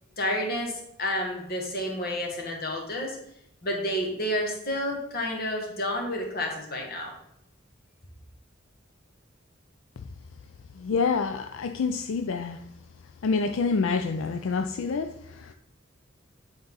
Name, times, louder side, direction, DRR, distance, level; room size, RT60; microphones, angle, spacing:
voice 1, 0.2-3.2 3.6-7.1, left 1 dB, 50° left, 1 dB, 1.7 m, -30 dB
voice 2, 10.8-12.6 13.2-15.5, left 4 dB, 80° left, 7 dB, 0.4 m, -27 dB
9.5 x 3.9 x 4.0 m, 0.78 s
head